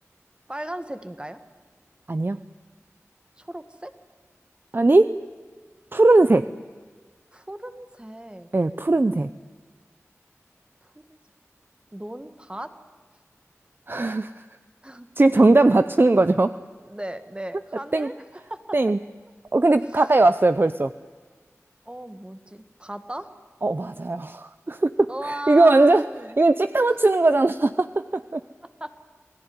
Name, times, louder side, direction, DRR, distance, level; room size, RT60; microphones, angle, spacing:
voice 1, 0.5-1.4 3.4-3.9 7.3-8.5 10.8-11.2 11.9-12.7 14.8-15.1 16.8-18.6 19.9-20.0 21.9-23.3 25.1-26.4 26.9-27.0 28.8-28.9, right 1 dB, 20° right, 9 dB, 1.8 m, -36 dB
voice 2, 4.7-5.2 5.9-6.5 8.5-9.3 13.9-14.4 15.2-16.6 17.9-18.1 18.7-19.0 19.5-20.9 23.6-26.0 26.4-28.4, right 2 dB, 45° right, 12 dB, 0.6 m, -19 dB
27.5 x 18.0 x 9.7 m, 1.5 s
wide cardioid pair, 60°, 5 cm